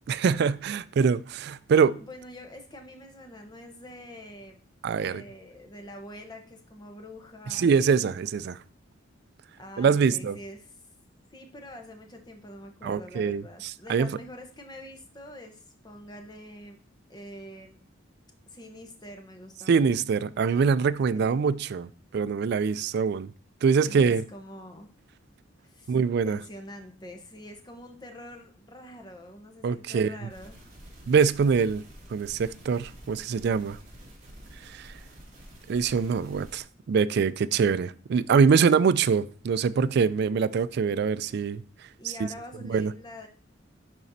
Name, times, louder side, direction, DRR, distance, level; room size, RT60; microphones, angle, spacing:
voice 1, 0.1-2.0 4.8-5.2 7.5-8.6 9.8-10.4 12.8-14.1 19.7-23.3 23.6-24.2 25.9-26.4 29.6-30.1 31.1-31.8 32.1-33.8 34.6-35.0 35.7-41.6 42.0-42.1 42.7-42.9, right 6 dB, 55° right, 0.3 m, -24 dB
voice 2, 2.0-4.6 4.9-7.7 9.6-10.7 11.3-16.8 17.1-17.8 18.5-19.9 21.1-21.4 23.9-24.9 25.6-26.0 26.2-30.7 42.0-43.3, left 1 dB, 20° left, 0.9 m, -45 dB
sound 1, 30.3-36.6, equal, 35° right, 2.2 m, -49 dB
10.5 x 4.2 x 2.7 m
head